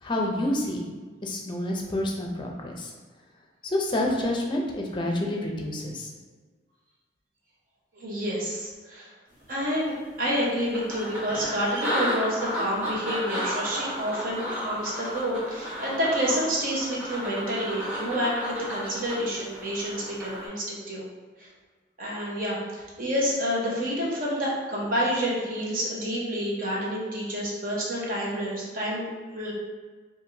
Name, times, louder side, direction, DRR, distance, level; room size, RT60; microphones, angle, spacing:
voice 1, 0.0-0.9 1.2-2.9 3.6-6.1, left 1 dB, 25° left, 0 dB, 0.5 m, -28 dB
voice 2, 7.9-9.1 9.5-21.1 21.4-21.5 22.0-29.5, equal, 50° right, -5 dB, 1.0 m, -29 dB
sound 1, 9.7-9.8 10.3-20.5, equal, 10° right, 1.1 m, -33 dB
4.7 x 2.6 x 2.7 m, 1.4 s
head